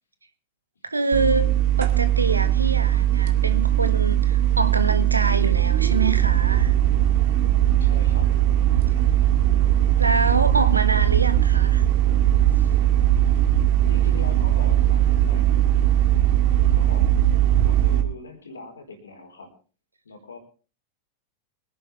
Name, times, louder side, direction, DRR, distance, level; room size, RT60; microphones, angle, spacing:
voice 1, 0.9-1.5 1.8-6.8 10.0-11.8, right 3 dB, 80° right, 1.4 m, -25 dB
sound 1, 1.1-18.0, right 11 dB, 50° right, 2.1 m, -19 dB
voice 2, 7.8-8.3 13.9-15.9 16.7-17.1 17.6-19.5 20.0-20.4, left 3 dB, 70° left, 4.1 m, -41 dB
24.0 x 10.5 x 3.4 m
figure-of-eight pair, 90°, 0 cm